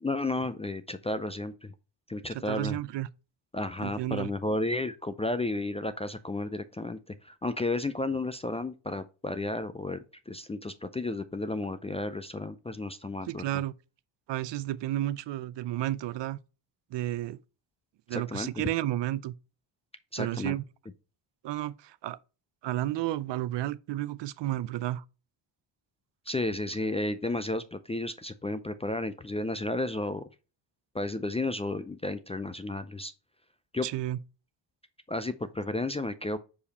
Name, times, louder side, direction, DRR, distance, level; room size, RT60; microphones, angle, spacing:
voice 1, 0.0-1.7 2.1-2.8 3.5-7.0 7.2-13.4 18.1-18.6 20.1-20.6 26.3-30.2 30.9-33.1 33.7-33.9 35.1-36.4, left 2 dB, 15° left, 0.3 m, -32 dB
voice 2, 2.3-3.1 3.8-4.3 13.3-13.7 14.3-16.4 16.9-17.4 18.1-19.3 20.2-20.6 21.4-22.2 22.6-25.0 33.8-34.2, right 14 dB, 65° right, 0.5 m, -32 dB
5.2 x 4.8 x 4.0 m
cardioid pair, 105°, 47 cm